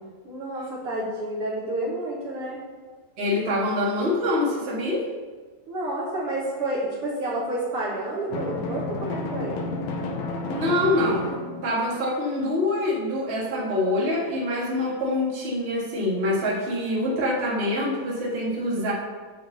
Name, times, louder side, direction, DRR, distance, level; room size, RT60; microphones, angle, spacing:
voice 1, 0.2-2.6 5.7-9.6, right 1 dB, 55° right, -5 dB, 1.8 m, -30 dB
voice 2, 3.2-5.1 10.5-18.9, left 1 dB, 30° right, -5 dB, 1.2 m, -25 dB
Drum, 8.3-12.1, left 3 dB, 70° left, 1.9 m, -31 dB
8.0 x 4.4 x 6.8 m, 1.4 s
omnidirectional pair, 3.8 m